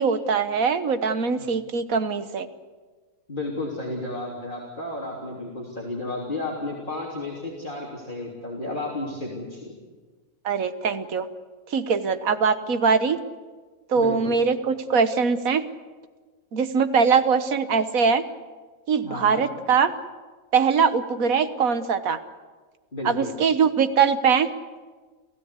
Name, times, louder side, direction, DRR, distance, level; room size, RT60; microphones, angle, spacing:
voice 1, 0.0-2.5 10.4-11.3 11.7-13.2 13.9-15.6 16.5-18.2 18.9-19.9 20.5-22.2 23.0-24.5, right 5 dB, 65° right, 10 dB, 1.6 m, -22 dB
voice 2, 3.3-9.7 13.9-14.4 19.0-19.5 22.9-23.3, left 2 dB, 35° left, -3 dB, 3.4 m, -32 dB
29.0 x 15.5 x 8.2 m, 1.4 s
omnidirectional pair, 1.6 m